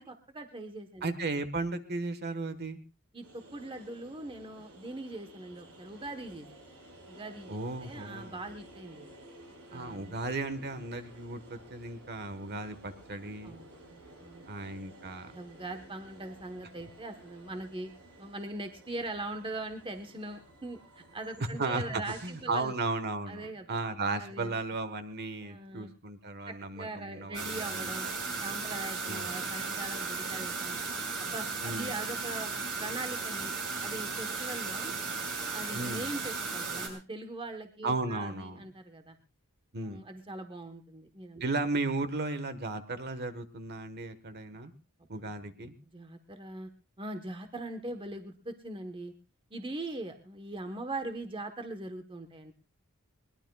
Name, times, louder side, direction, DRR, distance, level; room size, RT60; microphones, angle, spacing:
voice 1, 0.0-1.1 3.1-6.5 7.1-9.1 9.7-10.1 13.4-14.4 15.3-17.9 18.2-22.8 23.3-23.8 24.2-24.6 25.4-25.9 26.5-28.1 28.4-30.8 31.2-32.5 32.8-33.5 33.8-34.9 35.5-39.2 39.8-41.4 45.0-45.3 45.8-46.7 47.0-49.1 49.5-52.5, right 2 dB, 25° right, 6 dB, 1.2 m, -41 dB
voice 2, 1.0-2.8 7.5-8.4 9.7-13.6 14.5-15.3 21.6-28.2 29.1-29.3 31.6-31.9 35.7-36.1 37.8-38.6 39.7-40.0 41.4-44.7 45.1-45.7, right 3 dB, 50° right, 10 dB, 1.4 m, -35 dB
sound 1, 3.2-22.5, right 1 dB, 90° right, 7.2 m, -54 dB
sound 2, 27.3-36.9, right 4 dB, 65° right, 5.4 m, -35 dB
22.0 x 20.5 x 2.4 m, 0.31 s
head